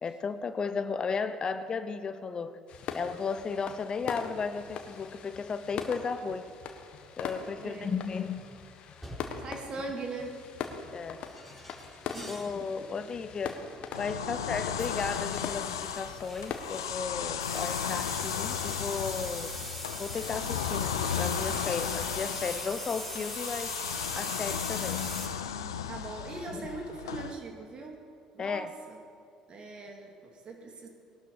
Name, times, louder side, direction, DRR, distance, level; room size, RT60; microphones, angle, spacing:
voice 1, 0.0-2.6 2.9-6.5 7.2-8.5 10.9-11.2 12.3-13.6 14.0-19.5 20.0-23.7 24.1-25.0 26.5-26.7 28.4-28.7, left 5 dB, 35° left, 11 dB, 0.7 m, -34 dB
sound 1, 2.7-16.6, left 6 dB, 60° left, 1.4 m, -42 dB
voice 2, 7.6-7.9 9.4-10.4 12.1-12.4 12.8-12.9 14.2-14.5 25.9-28.0 28.3-29.0 29.5-30.9, right 3 dB, 45° right, 2 dB, 2.8 m, -41 dB
sound 2, 8.4-8.6 9.0-9.5 11.2-12.6 12.9-13.2 14.8-17.0 17.4-25.3, equal, 5° right, 4.9 m, -41 dB
sound 3, 13.9-27.3, left 8 dB, 90° left, 0.6 m, -35 dB
19.5 x 12.0 x 5.1 m, 2.5 s
hypercardioid pair, 60°, 2 cm